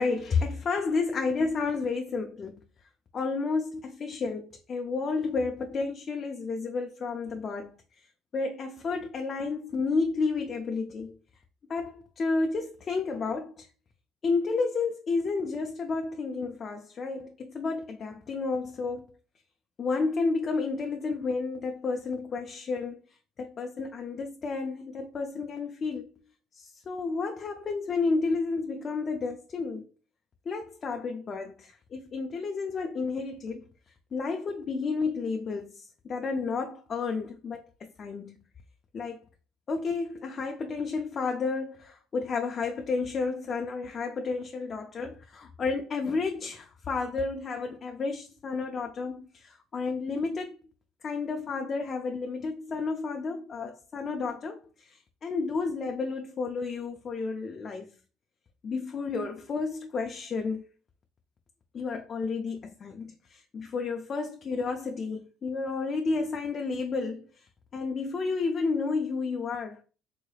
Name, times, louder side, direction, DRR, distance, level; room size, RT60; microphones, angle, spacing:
voice 1, 0.0-2.6 3.1-7.7 8.3-11.2 11.7-13.7 14.2-19.0 19.8-23.0 23.4-26.2 26.5-29.8 30.5-33.6 34.1-38.4 38.9-39.2 39.7-50.6 51.0-57.9 58.6-60.7 61.7-67.3 67.7-69.8, left 4 dB, 35° left, 0.4 m, -31 dB
3.8 x 3.2 x 2.2 m
cardioid pair, 130°, 0 cm